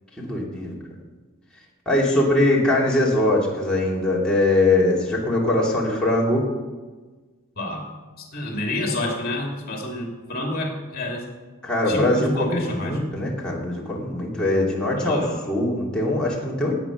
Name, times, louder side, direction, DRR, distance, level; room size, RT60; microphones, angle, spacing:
voice 1, 0.2-0.7 1.9-6.4 11.6-16.7, left 1 dB, 5° left, -5 dB, 2.6 m, -22 dB
voice 2, 8.3-11.3 11.9-13.0 15.0-15.3, left 1 dB, 45° left, 1 dB, 2.8 m, -28 dB
17.5 x 8.8 x 6.0 m, 1.3 s
head